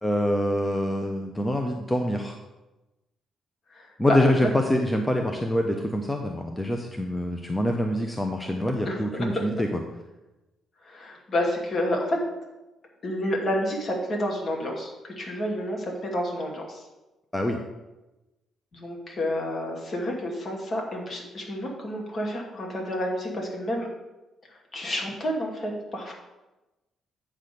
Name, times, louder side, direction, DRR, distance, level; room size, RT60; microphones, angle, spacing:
voice 1, 0.0-2.4 4.0-9.8 17.3-17.6, left 1 dB, 15° left, 3 dB, 0.8 m, -25 dB
voice 2, 3.7-4.5 8.8-9.3 10.8-12.2 13.0-16.8 18.7-23.9 24.7-26.1, equal, 45° left, 0 dB, 2.3 m, -29 dB
8.7 x 4.1 x 6.7 m, 1.0 s
cardioid pair, 90°, 0 cm